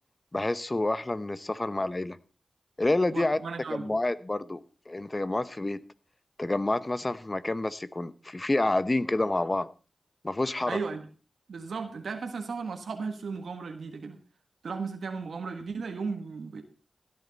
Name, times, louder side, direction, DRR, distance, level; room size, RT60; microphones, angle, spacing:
voice 1, 0.3-2.2 2.8-3.4 3.7-5.8 6.4-9.7 10.2-10.8, left 2 dB, 35° left, 14 dB, 1.0 m, -28 dB
voice 2, 3.1-4.0 10.7-11.1 11.5-14.2 14.6-16.6, right 4 dB, 85° right, 5 dB, 1.6 m, -35 dB
16.5 x 10.5 x 4.1 m, 0.35 s
cardioid pair, 45°, 0 cm